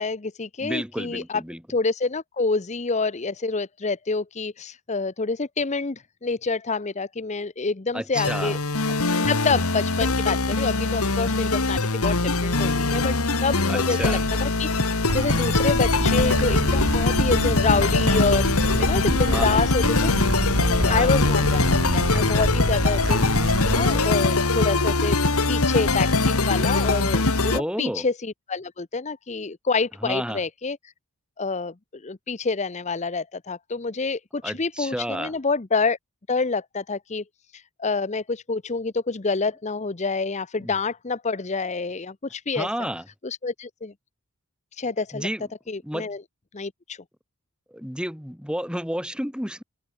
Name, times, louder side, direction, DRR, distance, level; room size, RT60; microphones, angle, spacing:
voice 1, 0.0-1.4 1.7-8.6 8.9-14.7 15.1-20.1 20.6-23.2 23.6-25.2 25.5-30.8 31.4-36.0 36.3-37.2 37.5-42.9 43.2-43.9 44.7-45.3 45.7-46.2 46.5-47.0, left 4 dB, 30° left, 0.7 m, -27 dB
voice 2, 0.6-1.6 7.9-8.6 13.7-14.2 19.3-19.7 20.8-21.1 27.5-28.0 30.0-30.4 34.4-35.3 40.6-40.7 42.6-43.0 45.1-45.5 45.8-46.1 47.7-49.6, equal, 5° right, 3.8 m, -31 dB
sound 1, 8.1-27.6, left 3 dB, 75° left, 1.9 m, -22 dB
Bird / Stream, 15.1-24.0, right 1 dB, 65° right, 2.4 m, -27 dB
open air
head